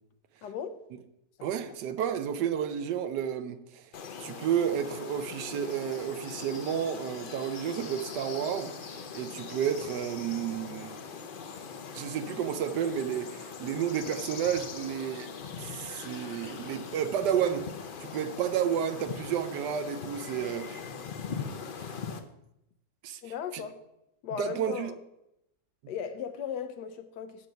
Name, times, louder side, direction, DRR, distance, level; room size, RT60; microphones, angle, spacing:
voice 1, 0.4-0.8 1.4-1.7 23.2-23.8 24.2-25.0 25.9-27.5, left 7 dB, 80° left, 1.3 m, -37 dB
voice 2, 1.4-3.9 4.2-11.0 11.9-15.3 15.6-17.7 18.1-21.0 21.8-21.9 23.0-23.6 24.4-24.9, right 9 dB, 90° right, 1.3 m, -31 dB
sound 1, 3.9-22.2, left 6 dB, 65° left, 0.5 m, -41 dB
8.0 x 5.9 x 5.2 m
omnidirectional pair, 1.8 m